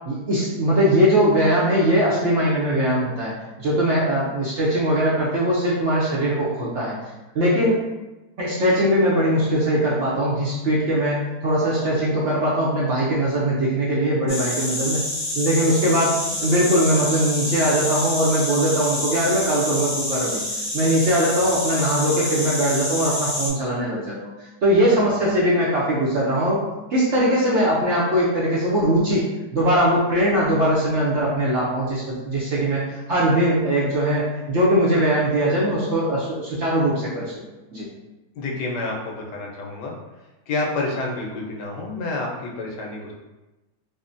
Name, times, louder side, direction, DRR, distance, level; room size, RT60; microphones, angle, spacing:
voice 1, 0.1-3.3 3.6-7.0 7.3-7.8 8.4-15.0 15.4-20.4 20.7-26.6 26.9-29.3 29.5-37.3 37.7-37.9, equal, 60° right, -7 dB, 0.7 m, -21 dB
sound 1, 14.3-23.5, left 1 dB, 25° left, 1.1 m, -27 dB
voice 2, 38.3-39.9 40.5-43.1, left 2 dB, 85° left, -1 dB, 1.3 m, -28 dB
3.7 x 2.1 x 2.5 m, 1.0 s
omnidirectional pair, 1.8 m